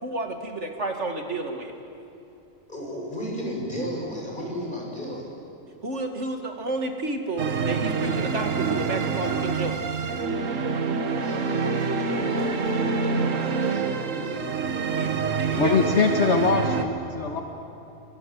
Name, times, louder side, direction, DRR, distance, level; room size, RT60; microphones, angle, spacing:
voice 1, 0.0-1.7 5.8-9.9 14.9-15.8, right 2 dB, 65° right, 4 dB, 2.5 m, -31 dB
voice 2, 2.7-5.3 11.2-14.5, equal, 40° left, -2 dB, 7.8 m, -35 dB
sound 1, 7.4-16.9, right 5 dB, 80° right, 1.8 m, -26 dB
voice 3, 15.5-17.4, left 4 dB, 60° left, 3 dB, 1.8 m, -22 dB
29.5 x 24.5 x 7.8 m, 2.9 s
omnidirectional pair, 1.3 m